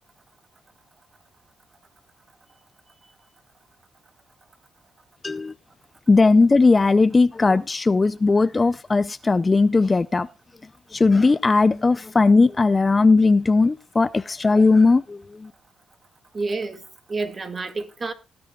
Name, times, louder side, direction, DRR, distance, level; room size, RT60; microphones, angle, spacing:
voice 1, 6.1-10.3 10.9-15.5, left 3 dB, 25° left, 0.5 m, -18 dB
voice 2, 16.3-18.1, right 3 dB, 35° right, 1.9 m, -29 dB
19.0 x 9.5 x 2.3 m
cardioid pair, 90°, 0 cm